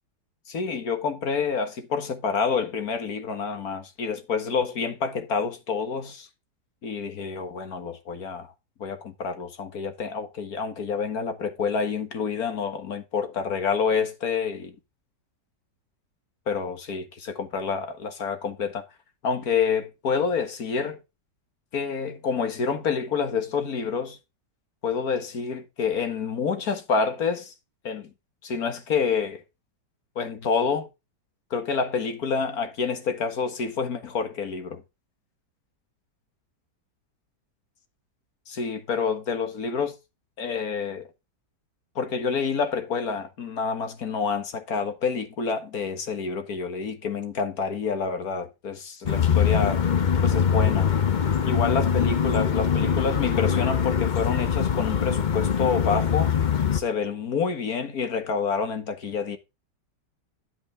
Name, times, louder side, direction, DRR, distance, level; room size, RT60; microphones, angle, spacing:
voice 1, 0.5-6.3 6.8-8.5 8.8-14.8 16.5-18.8 19.2-21.0 21.7-24.2 24.8-27.5 27.8-28.1 28.4-29.4 30.2-30.9 31.5-34.8 38.5-40.0 40.4-41.1 42.0-49.8 50.2-50.9 51.4-56.4 56.7-59.4, left 5 dB, 60° left, 2.0 m, -28 dB
Neighborhood Street, 49.1-56.8, left 7 dB, 45° left, 0.6 m, -23 dB
9.8 x 8.2 x 3.5 m
omnidirectional pair, 1.8 m